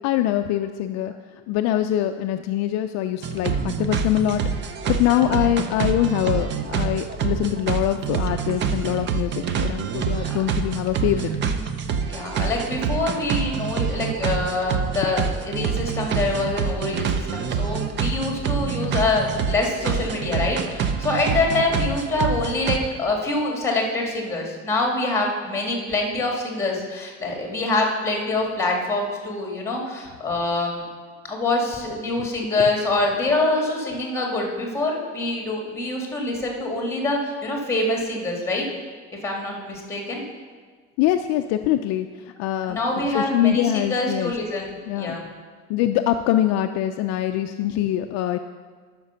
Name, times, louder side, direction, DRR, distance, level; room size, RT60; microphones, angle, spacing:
voice 1, 0.0-11.3 41.0-42.8 43.1-44.3 44.9-45.2 45.7-48.4, left 12 dB, 55° left, 7 dB, 0.4 m, -24 dB
sound 1, 3.2-22.8, right 6 dB, 35° right, 0.6 m, -26 dB
voice 2, 12.1-30.8 31.2-38.7 39.2-40.2 42.6-45.3, left 2 dB, 10° left, 0 dB, 1.9 m, -25 dB
13.0 x 5.9 x 5.5 m, 1.5 s
cardioid pair, 160°, 32 cm